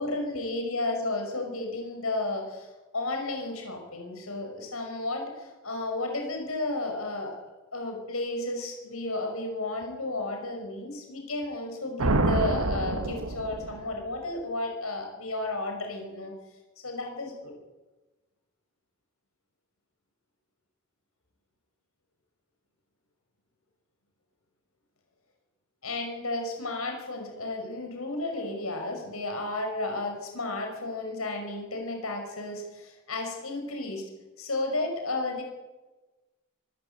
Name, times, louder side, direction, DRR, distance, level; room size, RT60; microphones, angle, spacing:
voice 1, 0.0-7.4 7.7-16.3 16.8-17.5 25.8-34.1 34.4-35.4, left 2 dB, 85° left, 3 dB, 5.9 m, -33 dB
sound 1, 12.0-14.0, right 2 dB, 90° right, 1.5 m, -27 dB
24.0 x 13.5 x 8.4 m, 1.1 s
head